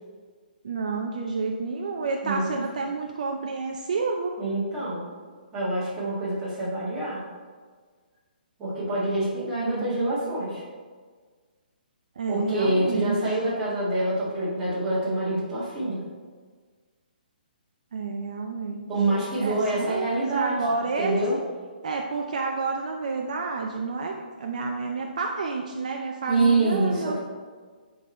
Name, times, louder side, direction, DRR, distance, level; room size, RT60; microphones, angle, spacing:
voice 1, 0.6-4.3 9.6-9.9 12.2-13.4 17.9-18.9 19.4-21.2 21.8-27.2, right 4 dB, 45° right, 2 dB, 0.6 m, -30 dB
voice 2, 2.2-2.6 4.4-5.0 5.5-7.2 8.6-10.6 12.3-16.0 18.9-20.6 21.0-21.4 26.3-27.2, right 2 dB, 10° right, -9 dB, 1.8 m, -26 dB
10.5 x 4.0 x 4.3 m, 1.5 s
hypercardioid pair, 175°, 5 cm